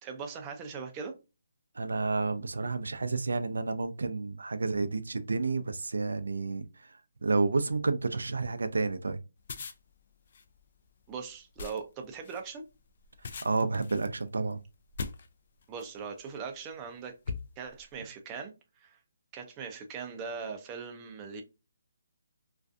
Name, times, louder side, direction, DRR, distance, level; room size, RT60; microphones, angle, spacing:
voice 1, 0.0-1.1 11.1-12.6 15.7-17.1 17.6-18.5 18.8-19.0 19.3-21.4, right 5 dB, 20° right, 0.4 m, -40 dB
voice 2, 1.8-6.7 7.2-9.2 13.4-14.6, right 3 dB, 85° right, 0.3 m, -30 dB
sound 1, 9.4-16.0 16.6-16.8 17.2-18.0, left 5 dB, 50° left, 0.3 m, -42 dB
2.5 x 2.3 x 2.4 m
hypercardioid pair, 160°, 0 cm